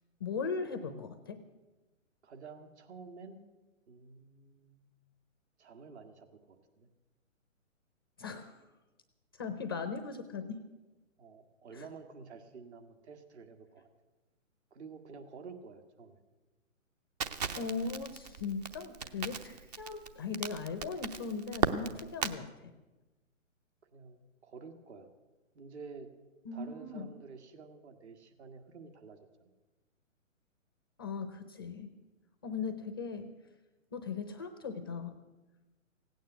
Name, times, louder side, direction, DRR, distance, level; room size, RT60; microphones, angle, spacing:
voice 1, 0.2-1.4 8.2-8.6 9.4-10.6 11.7-11.9 17.6-22.7 26.4-27.1 31.0-31.9 32.4-33.3 33.9-35.2, left 5 dB, 20° left, 9 dB, 0.4 m, -38 dB
voice 2, 2.2-3.4 3.9-4.8 5.6-6.9 11.2-13.9 14.7-16.2 19.5-19.6 23.9-25.1 25.6-26.1 26.5-29.5 32.5-32.7, right 5 dB, 55° right, 6 dB, 1.9 m, -50 dB
Crackle, 17.2-22.4, right 6 dB, 30° right, 0.6 m, -36 dB
16.5 x 9.2 x 9.1 m, 1.2 s
hypercardioid pair, 145°, 40 cm